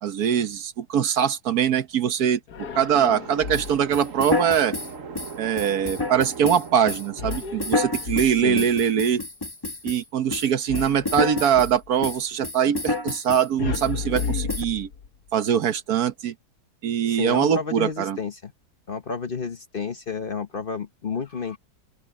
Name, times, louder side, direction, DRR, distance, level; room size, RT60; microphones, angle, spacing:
voice 1, 0.0-4.7 5.4-9.2 9.8-14.9 15.3-16.3 16.8-18.2, right 8 dB, 70° right, 1.4 m, -23 dB
sound 1, 2.5-4.0 7.2-8.7 10.7-11.9 13.6-15.3, left 6 dB, 80° left, 1.7 m, -33 dB
sound 2, 3.0-8.7, right 5 dB, 55° right, 1.6 m, -40 dB
sound 3, 3.5-10.0 10.3-11.7 12.0-13.5 13.7-13.9 14.1-14.6, left 2 dB, 15° left, 1.3 m, -29 dB
voice 2, 8.4-8.7 17.1-18.5 18.9-21.6, left 5 dB, 40° left, 1.0 m, -31 dB
open air
omnidirectional pair, 1.7 m